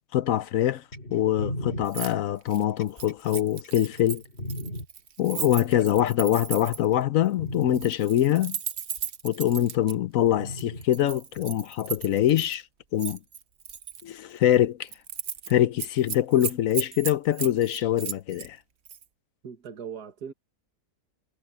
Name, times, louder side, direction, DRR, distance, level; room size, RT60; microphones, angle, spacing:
voice 1, 0.1-0.8 1.1-4.2 5.2-8.6 9.2-12.6 12.9-13.2 14.0-14.9 15.5-18.6, left 12 dB, 65° left, 1.0 m, -24 dB
sound 1, 0.9-4.9 5.8-6.5 6.9-7.1 7.4-7.9 9.0-9.1 10.4-10.9 12.0-12.1, equal, 40° left, 3.9 m, -37 dB
Keys jangling, 1.9-2.1 2.4-6.9 7.6-9.9 10.6-12.6 13.0-14.0 14.4-14.6 14.9-15.5 15.8-18.5 18.9-19.0, right 8 dB, 50° right, 1.1 m, -36 dB
voice 2, 19.4-20.3, right 7 dB, 75° right, 2.2 m, -39 dB
omnidirectional pair, 1.7 m